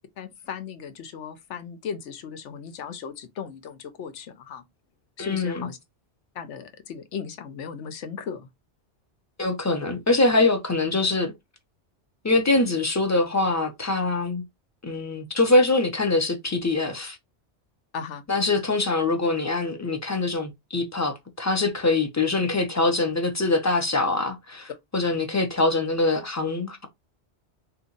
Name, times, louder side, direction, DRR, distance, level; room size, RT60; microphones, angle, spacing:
voice 1, 0.2-4.6 5.2-5.8 6.3-8.5 17.9-18.2, left 6 dB, 90° left, 1.0 m, -36 dB
voice 2, 5.2-5.7 9.4-11.3 12.2-14.4 14.8-17.2 18.3-26.9, left 2 dB, 20° left, 0.5 m, -23 dB
2.8 x 2.4 x 3.8 m
omnidirectional pair, 1.2 m